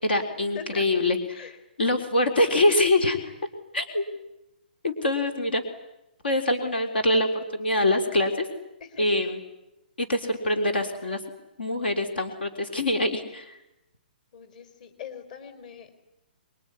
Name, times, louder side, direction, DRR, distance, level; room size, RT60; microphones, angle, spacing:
voice 1, 0.0-3.2 3.7-4.0 4.8-5.6 6.2-8.5 9.0-9.4 10.0-11.2 11.6-13.6, left 1 dB, 90° left, 7 dB, 3.8 m, -24 dB
voice 2, 0.5-0.8 1.3-1.5 8.9-9.1 14.3-15.9, left 6 dB, 55° left, 8 dB, 4.5 m, -41 dB
25.5 x 22.5 x 9.9 m, 0.89 s
hypercardioid pair, 145°, 5 cm